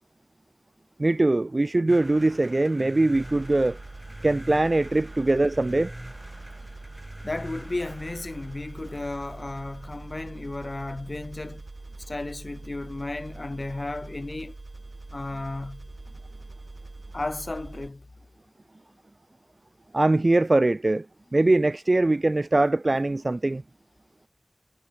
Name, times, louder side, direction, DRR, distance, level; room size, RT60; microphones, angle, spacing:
voice 1, 1.0-3.8 4.2-5.9 19.9-21.1 21.3-23.6, right 2 dB, 60° right, 1.0 m, -22 dB
sound 1, 1.9-11.3, right 1 dB, 15° right, 7.8 m, -45 dB
sound 2, 3.1-17.9, right 2 dB, 75° right, 2.4 m, -43 dB
voice 2, 7.2-11.7 12.0-14.6 15.1-15.9 17.1-18.1, left 2 dB, 65° left, 1.9 m, -34 dB
wide cardioid pair, 45°, 0 cm